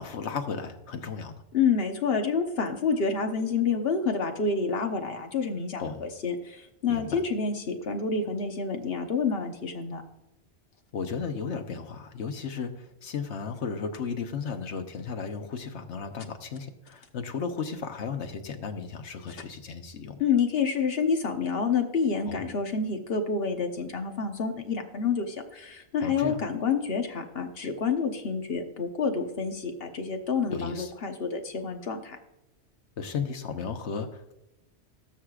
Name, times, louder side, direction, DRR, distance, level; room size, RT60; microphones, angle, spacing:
voice 1, 0.0-1.4 5.8-6.0 6.9-7.2 10.9-20.2 22.2-22.4 26.0-26.4 30.5-30.9 33.0-34.3, left 5 dB, 75° left, 6 dB, 1.3 m, -34 dB
voice 2, 1.5-10.0 20.2-32.2, left 5 dB, 60° left, 5 dB, 1.3 m, -28 dB
19.0 x 6.5 x 2.4 m, 0.93 s
omnidirectional pair, 1.2 m